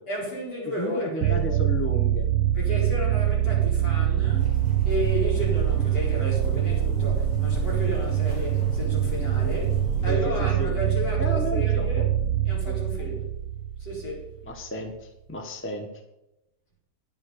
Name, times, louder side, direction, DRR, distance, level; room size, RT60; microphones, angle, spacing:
voice 1, 0.1-1.6 2.5-12.1 12.5-13.3 13.8-14.3, left 1 dB, 70° left, 5.2 m, -33 dB
voice 2, 0.8-2.3 10.1-10.7 11.2-12.1 12.6-12.8 14.4-15.9, equal, 10° left, 1.0 m, -33 dB
sound 1, 1.2-14.6, right 11 dB, 80° right, 1.2 m, -24 dB
sound 2, 4.4-10.1, right 2 dB, 85° left, 3.5 m, -35 dB
10.0 x 7.4 x 6.9 m
omnidirectional pair, 1.9 m